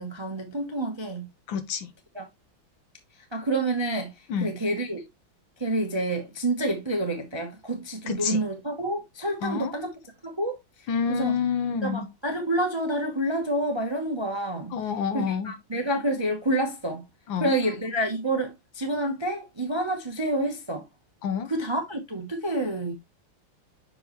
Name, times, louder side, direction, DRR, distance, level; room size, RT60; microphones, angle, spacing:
voice 1, 0.0-1.3 2.1-2.2 3.3-5.1 5.6-9.9 10.2-11.4 11.8-14.8 15.1-17.1 17.4-20.9 21.5-22.9, right 1 dB, 25° right, 0.5 m, -28 dB
voice 2, 1.5-1.9 4.3-4.5 8.1-8.4 9.4-9.7 10.9-12.1 14.7-15.5 17.3-17.5 21.2-21.5, left 7 dB, 75° left, 1.6 m, -28 dB
6.4 x 5.0 x 3.0 m
omnidirectional pair, 2.2 m